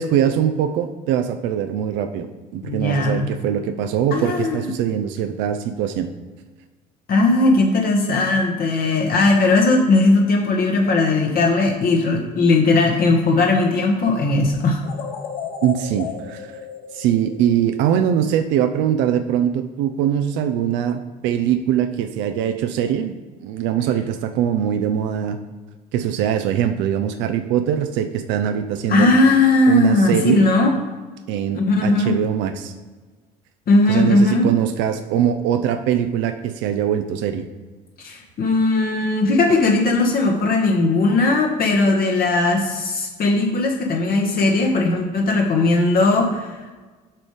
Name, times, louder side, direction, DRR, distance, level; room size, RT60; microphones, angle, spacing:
voice 1, 0.0-2.3 2.5-6.1 15.6-16.5 16.9-23.1 23.4-25.4 25.9-29.1 29.7-30.4 31.3-32.7 33.9-37.5, right 9 dB, 65° right, 9 dB, 0.7 m, -22 dB
voice 2, 2.6-3.3 4.1-4.7 7.1-14.8 28.9-30.8 31.5-32.2 33.7-34.5 38.0-46.7, left 2 dB, 45° left, 1 dB, 1.4 m, -18 dB
sound 1, 14.8-18.0, left 7 dB, 70° left, 1.4 m, -34 dB
7.6 x 5.3 x 5.0 m, 1.3 s
hypercardioid pair, 65°, 21 cm